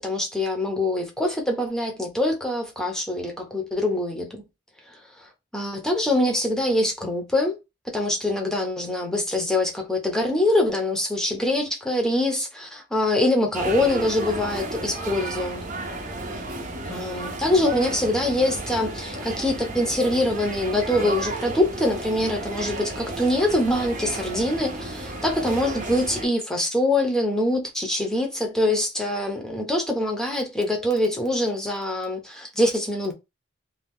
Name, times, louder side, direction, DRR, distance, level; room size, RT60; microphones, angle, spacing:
voice 1, 0.0-4.4 5.5-7.6 7.9-15.7 16.9-33.1, left 1 dB, 5° left, 0.8 m, -24 dB
sound 1, 13.5-26.3, right 2 dB, 45° right, 0.8 m, -33 dB
2.8 x 2.3 x 3.6 m
head